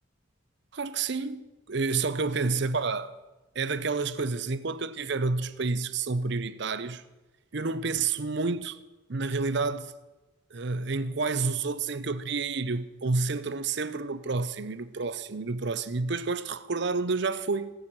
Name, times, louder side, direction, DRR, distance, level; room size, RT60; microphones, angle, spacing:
voice 1, 0.7-3.1 3.5-7.0 7.5-8.8 9.1-9.9 10.5-17.7, right 4 dB, 55° right, 0.7 m, -29 dB
17.0 x 6.4 x 8.8 m
head